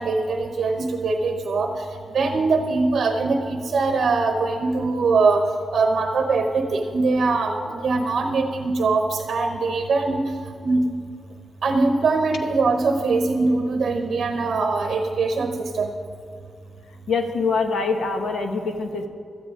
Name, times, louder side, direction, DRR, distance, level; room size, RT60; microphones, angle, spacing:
voice 1, 0.0-5.4 5.7-10.3 10.6-10.8 11.6-15.9, right 3 dB, 50° right, 5 dB, 0.9 m, -22 dB
voice 2, 17.1-19.1, left 4 dB, 70° left, 5 dB, 1.3 m, -24 dB
17.0 x 13.0 x 3.7 m, 2.3 s
wide cardioid pair, 175°, 0 cm